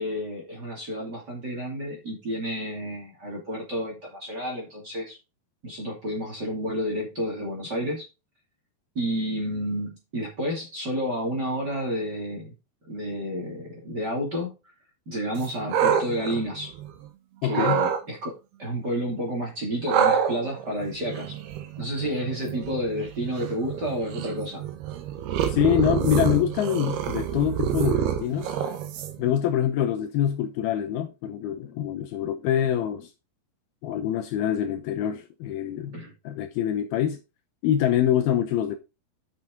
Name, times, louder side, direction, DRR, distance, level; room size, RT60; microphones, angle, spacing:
voice 1, 0.0-5.2 5.6-8.0 8.9-12.5 12.9-14.5 15.1-16.8 17.4-18.3 18.6-21.3 21.8-24.6 32.7-32.8 35.9-36.1, equal, 30° right, 2.7 m, -30 dB
sound 1, 15.4-17.1 17.5-18.0 19.9-29.3, right 9 dB, 75° right, 3.1 m, -27 dB
voice 2, 17.4-17.8 25.5-28.5 29.2-33.1 33.8-36.0 36.2-37.2 37.6-38.8, left 10 dB, 75° left, 2.5 m, -25 dB
8.6 x 6.2 x 3.9 m
omnidirectional pair, 4.9 m